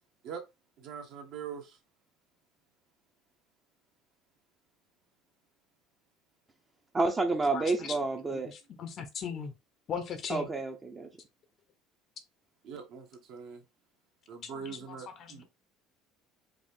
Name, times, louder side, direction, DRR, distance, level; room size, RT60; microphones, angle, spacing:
voice 1, 0.8-1.8 12.6-13.6 14.3-15.4, right 6 dB, 55° right, 1.2 m, -43 dB
voice 2, 6.9-8.5 10.3-11.1, right 3 dB, 15° right, 0.6 m, -29 dB
voice 3, 7.5-7.9 8.5-9.5 9.9-10.5 14.4-15.3, left 7 dB, 35° left, 0.6 m, -38 dB
5.0 x 2.5 x 3.7 m
cardioid pair, 155°, 0 cm